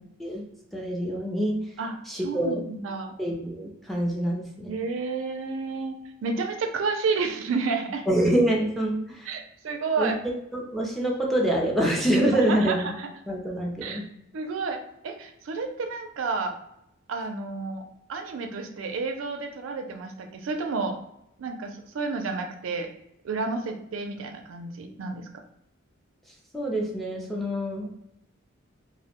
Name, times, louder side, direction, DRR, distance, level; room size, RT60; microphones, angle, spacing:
voice 1, 0.7-1.6 2.1-2.6 3.2-4.7 8.1-9.3 10.0-10.1 10.5-12.9 13.3-14.1 26.5-27.9, right 1 dB, ahead, -2 dB, 0.4 m, -26 dB
voice 2, 2.2-3.1 4.7-8.0 9.3-10.2 12.3-13.1 13.8-14.0 14.3-16.6 17.1-17.8 18.1-21.0 21.4-22.9 23.2-25.3, right 4 dB, 70° right, 5 dB, 0.4 m, -31 dB
2.5 x 2.1 x 2.9 m, 0.80 s
head